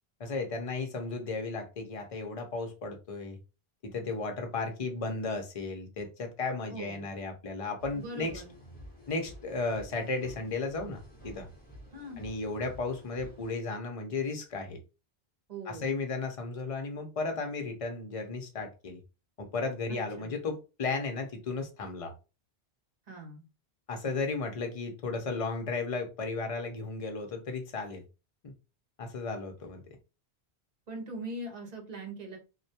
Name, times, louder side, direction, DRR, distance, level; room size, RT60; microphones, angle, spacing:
voice 1, 0.2-3.4 3.8-8.4 9.1-11.5 12.2-14.8 15.7-19.0 19.4-22.1 23.9-28.0 28.4-28.5 29.0-29.8, left 3 dB, 45° left, 4 dB, 0.5 m, -34 dB
voice 2, 6.7-7.0 7.9-8.5 11.9-12.2 15.5-15.9 19.9-20.3 23.1-23.5 30.9-32.4, right 1 dB, 45° right, 1 dB, 0.7 m, -41 dB
sound 1, 7.8-13.5, equal, 10° left, 0.9 m, -50 dB
2.1 x 2.1 x 2.6 m, 0.30 s
omnidirectional pair, 1.1 m